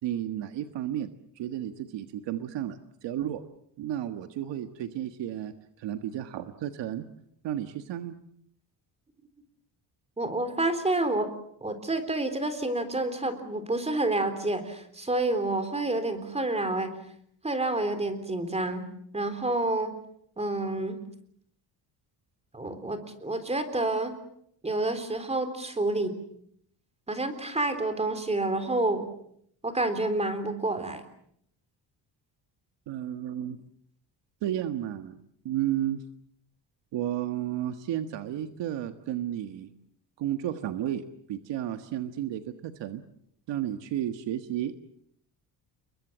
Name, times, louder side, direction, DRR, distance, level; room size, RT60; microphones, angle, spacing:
voice 1, 0.0-1.1 1.3-3.4 3.8-7.0 7.4-8.1 32.9-33.6 34.4-36.0 36.9-39.7 40.2-41.0 41.3-43.0 43.5-44.7, right 11 dB, 85° right, 8 dB, 1.6 m, -32 dB
voice 2, 10.2-11.3 11.6-17.0 17.4-18.9 19.1-19.9 20.4-21.0 22.5-24.2 24.6-26.1 27.1-29.1 29.6-31.0, right 2 dB, 15° right, 9 dB, 3.7 m, -28 dB
29.5 x 22.5 x 7.5 m, 0.70 s
cardioid pair, 145°, 42 cm